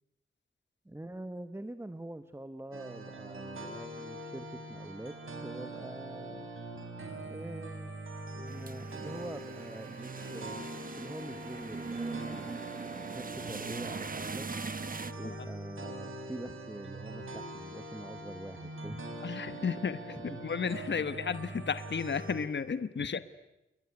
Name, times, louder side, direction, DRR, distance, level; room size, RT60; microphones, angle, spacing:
voice 1, 0.8-6.5 7.3-7.9 8.3-10.7 10.9-12.5 13.1-14.5 15.1-19.0 20.1-20.5 23.0-23.1, right 1 dB, 10° right, 11 dB, 1.1 m, -45 dB
sound 1, 2.7-22.5, right 2 dB, 80° right, 4.8 m, -43 dB
sound 2, 8.5-15.1, right 4 dB, 45° right, 1.1 m, -41 dB
voice 2, 19.2-20.0 20.4-23.2, left 6 dB, 60° left, 13 dB, 1.0 m, -33 dB
28.5 x 21.5 x 9.7 m, 0.95 s
wide cardioid pair, 120°, 21 cm